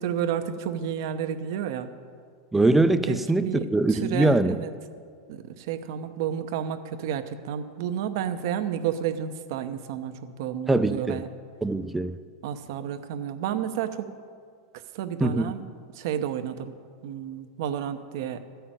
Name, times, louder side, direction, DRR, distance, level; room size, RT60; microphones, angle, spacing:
voice 1, 0.0-1.9 3.1-4.7 5.3-11.3 12.4-14.1 14.9-15.6 15.9-16.7 17.0-18.4, right 9 dB, 65° right, 9 dB, 0.8 m, -31 dB
voice 2, 2.5-4.6 10.7-11.2 11.6-12.2 15.2-15.5, right 2 dB, 10° right, 11 dB, 0.5 m, -22 dB
13.0 x 5.8 x 8.8 m, 2.1 s
hypercardioid pair, 115°, 2 cm